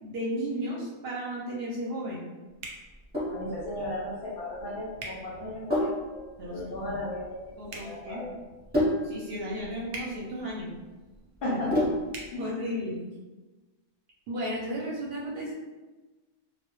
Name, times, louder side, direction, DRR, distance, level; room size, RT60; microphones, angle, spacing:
voice 1, 0.0-2.2 6.4-6.9 7.6-8.2 9.0-10.7 11.5-11.6 12.4-13.0 14.3-15.5, equal, 60° right, -5 dB, 0.7 m, -34 dB
sound 1, 2.6-2.8 5.0-5.2 7.6-7.9 9.9-10.1 12.1-12.3, right 2 dB, 85° right, 0.3 m, -39 dB
Sink (filling or washing), 2.8-12.3, left 1 dB, 10° right, 0.7 m, -32 dB
voice 2, 3.3-8.4 11.4-11.9 12.3-12.5, left 1 dB, 60° left, -6 dB, 0.7 m, -35 dB
2.1 x 2.0 x 2.9 m, 1.2 s
omnidirectional pair, 1.3 m